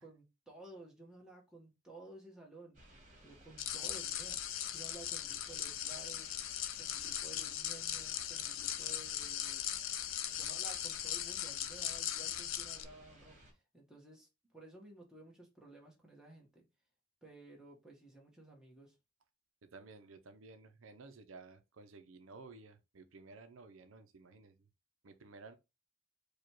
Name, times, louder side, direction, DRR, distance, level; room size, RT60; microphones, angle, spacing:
voice 1, 0.0-2.8 3.2-4.4 4.7-6.4 6.8-9.8 10.2-13.4 13.7-14.3 14.5-16.6 17.2-18.9, right 2 dB, 5° right, 1.2 m, -55 dB
sound 1, 2.7-13.5, right 1 dB, 40° right, 1.7 m, -59 dB
sound 2, 3.6-12.8, left 11 dB, 80° left, 0.5 m, -39 dB
voice 2, 19.6-24.7 25.0-25.6, right 3 dB, 85° right, 0.6 m, -54 dB
4.8 x 2.3 x 4.5 m
head